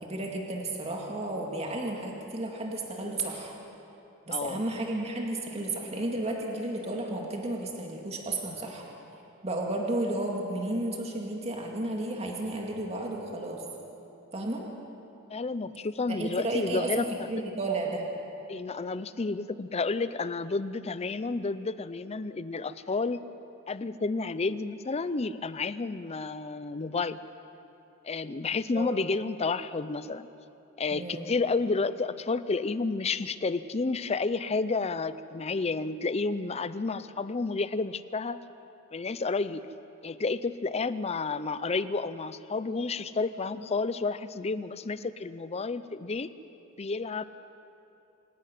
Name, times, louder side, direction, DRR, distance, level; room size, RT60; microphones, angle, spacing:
voice 1, 0.0-3.6 4.3-8.8 9.4-13.6 14.3-14.6 16.1-18.1 28.7-28.9 30.9-31.3, right 2 dB, 30° right, 0 dB, 2.3 m, -32 dB
voice 2, 4.3-4.6 15.3-17.1 18.5-23.2 23.7-27.2 28.0-30.3 30.8-38.4 38.9-39.7 40.0-46.3 46.8-47.2, left 3 dB, 30° left, 14 dB, 0.5 m, -31 dB
26.5 x 11.5 x 9.3 m, 2.9 s
head